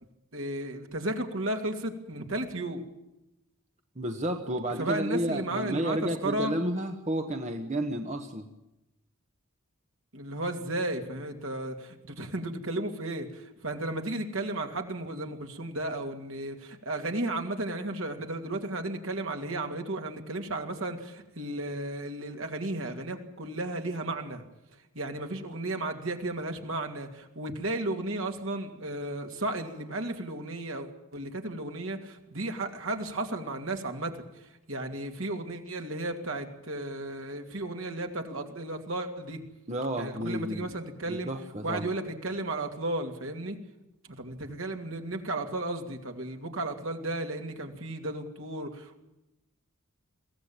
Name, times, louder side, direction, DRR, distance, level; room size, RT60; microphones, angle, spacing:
voice 1, 0.3-2.8 4.8-6.5 10.1-24.4 24.9-39.4 40.0-41.3 41.6-43.6 44.2-49.0, right 2 dB, 65° right, 4 dB, 2.7 m, -34 dB
voice 2, 4.0-8.5 39.7-40.7 41.1-41.9, right 1 dB, 30° right, 4 dB, 1.3 m, -31 dB
23.0 x 16.5 x 9.0 m, 0.93 s
head